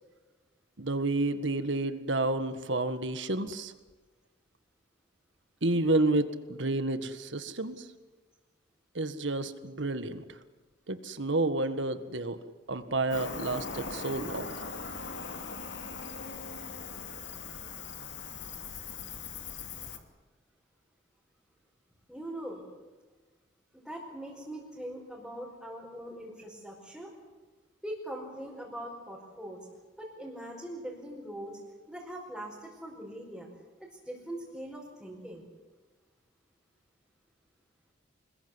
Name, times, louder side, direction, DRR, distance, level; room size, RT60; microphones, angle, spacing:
voice 1, 0.8-3.7 5.6-7.8 9.0-10.2 10.9-12.4 12.7-14.6, right 2 dB, 75° right, 10 dB, 1.7 m, -30 dB
Cricket, 13.1-20.0, left 5 dB, 70° left, 2.7 m, -40 dB
voice 2, 22.1-22.6 23.7-27.1 27.8-29.6 30.0-31.5 31.9-33.5 33.8-35.4, right 1 dB, ahead, -6 dB, 5.2 m, -41 dB
26.5 x 21.5 x 8.0 m, 1.3 s
head